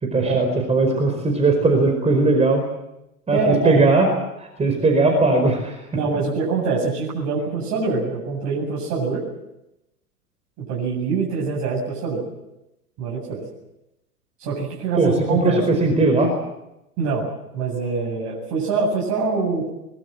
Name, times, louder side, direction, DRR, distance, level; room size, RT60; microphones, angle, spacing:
voice 1, 0.0-2.6 3.3-4.1 4.4-5.8 14.9-16.3, right 3 dB, 15° right, 4 dB, 4.9 m, -19 dB
voice 2, 3.3-3.8 5.9-9.2 10.6-12.2 13.0-13.4 14.4-15.6 17.0-17.3 17.5-19.7, right 4 dB, 40° right, -3 dB, 8.0 m, -24 dB
23.0 x 22.5 x 7.6 m, 0.90 s
figure-of-eight pair, 105°, 45 cm